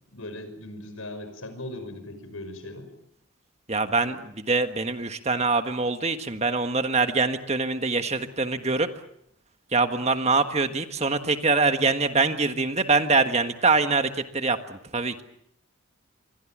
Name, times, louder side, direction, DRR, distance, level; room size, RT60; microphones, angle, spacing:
voice 1, 0.1-2.9, left 1 dB, 80° left, 9 dB, 5.8 m, -38 dB
voice 2, 3.7-8.9 9.7-15.2, right 3 dB, 30° right, 8 dB, 1.5 m, -24 dB
27.0 x 23.5 x 7.5 m, 0.73 s
head